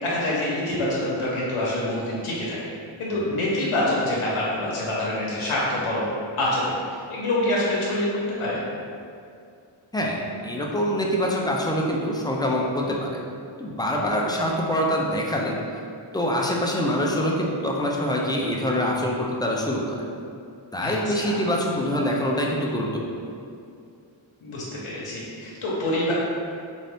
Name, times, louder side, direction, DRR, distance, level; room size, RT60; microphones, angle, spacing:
voice 1, 0.0-2.6 3.0-6.0 6.4-6.7 7.1-8.6 20.8-21.4 24.4-26.1, left 1 dB, 85° left, -6 dB, 0.8 m, -26 dB
voice 2, 9.9-13.2 13.6-15.6 16.1-20.0 20.7-23.0, equal, 10° left, -2 dB, 0.3 m, -25 dB
3.9 x 2.7 x 3.3 m, 2.4 s
wide cardioid pair, 115°, 49 cm